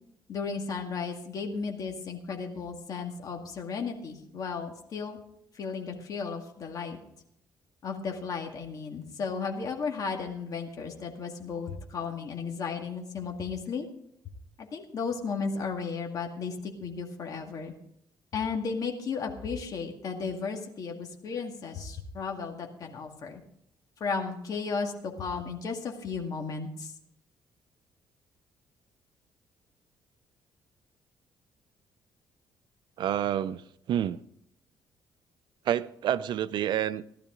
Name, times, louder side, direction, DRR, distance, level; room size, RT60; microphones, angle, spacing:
voice 1, 0.3-5.2 5.6-7.0 7.8-13.9 14.6-17.7 18.3-23.4 24.0-26.9, left 5 dB, 45° left, 2.0 m, -34 dB
voice 2, 33.0-33.6 33.9-34.2 35.7-37.0, right 10 dB, 60° right, 0.5 m, -28 dB
15.5 x 12.0 x 3.8 m
cardioid pair, 140°, 8 cm